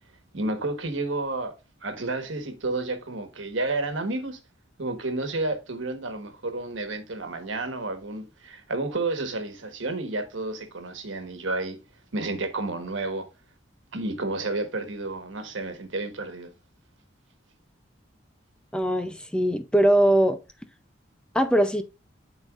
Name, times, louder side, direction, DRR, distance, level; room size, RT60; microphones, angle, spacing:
voice 1, 0.3-1.5 1.8-4.4 4.8-11.8 12.1-13.3 13.9-16.5, right 2 dB, 90° right, 1.3 m, -31 dB
voice 2, 18.7-20.4 21.3-21.8, right 1 dB, 5° left, 0.4 m, -21 dB
12.0 x 4.0 x 2.4 m
head